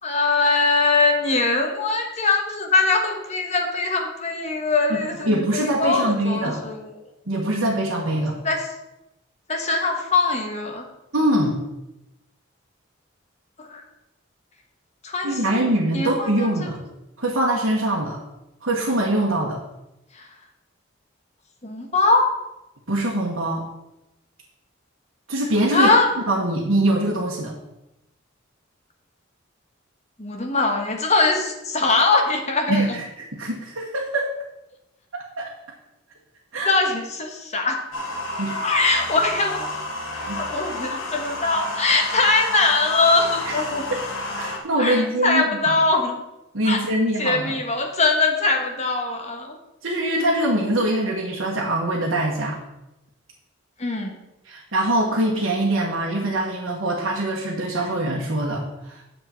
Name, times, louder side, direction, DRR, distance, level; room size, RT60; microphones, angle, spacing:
voice 1, 0.0-6.9 8.4-8.7 9.5-10.8 13.6-13.8 15.0-16.7 20.1-20.3 21.6-22.3 25.7-26.1 30.2-33.0 36.6-37.8 38.6-39.7 40.3-43.9 44.8-46.2 46.6-46.8 47.2-49.6 53.8-54.2, left 3 dB, 35° left, 3 dB, 1.4 m, -22 dB
voice 2, 4.9-6.6 7.3-8.4 11.1-11.6 15.2-16.8 17.2-18.2 18.6-19.6 22.9-23.6 25.3-25.9 26.3-27.5 32.7-33.0 33.3-34.3 35.1-35.5 36.5-36.7 38.4-38.6 40.1-40.5 43.4-43.5 43.9-44.0 44.3-45.8 46.5-47.5 49.8-52.6 54.5-59.0, right 1 dB, 80° right, -3 dB, 1.5 m, -23 dB
sound 1, 37.9-44.6, left 1 dB, 85° left, 1.8 m, -30 dB
9.6 x 6.9 x 4.5 m, 0.92 s
head